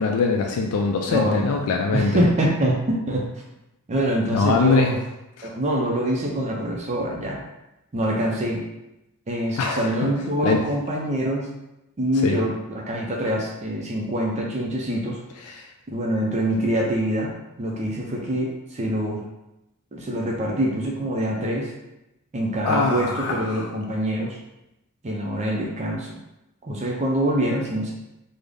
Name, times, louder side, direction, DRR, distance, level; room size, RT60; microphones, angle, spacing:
voice 1, 0.0-2.2 4.3-5.0 5.4-5.5 9.6-9.9 10.4-10.6 12.2-12.4 15.4-15.7 22.6-23.7, left 4 dB, 75° left, 2 dB, 0.3 m, -22 dB
voice 2, 1.1-1.5 1.9-3.2 3.9-4.9 5.4-7.4 7.9-8.6 9.3-11.5 12.0-15.2 15.9-17.3 17.6-19.2 19.9-21.7 22.3-24.4 25.0-26.2 26.6-27.9, right 1 dB, 30° right, -1 dB, 0.4 m, -25 dB
3.7 x 2.0 x 3.3 m, 0.92 s
head